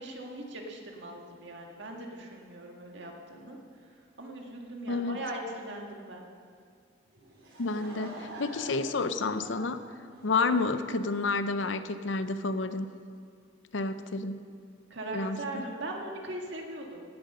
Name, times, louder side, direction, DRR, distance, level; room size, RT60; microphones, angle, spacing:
voice 1, 0.0-3.6 4.2-6.2 14.9-17.0, right 1 dB, 65° right, 1 dB, 1.9 m, -40 dB
voice 2, 4.9-5.2 7.6-9.8 10.2-12.9 13.7-14.4 15.1-15.6, left 3 dB, 70° left, 11 dB, 0.6 m, -30 dB
Laughter / Crowd, 7.1-10.9, right 2 dB, 85° right, 3.4 m, -46 dB
17.5 x 7.8 x 5.6 m, 2.2 s
head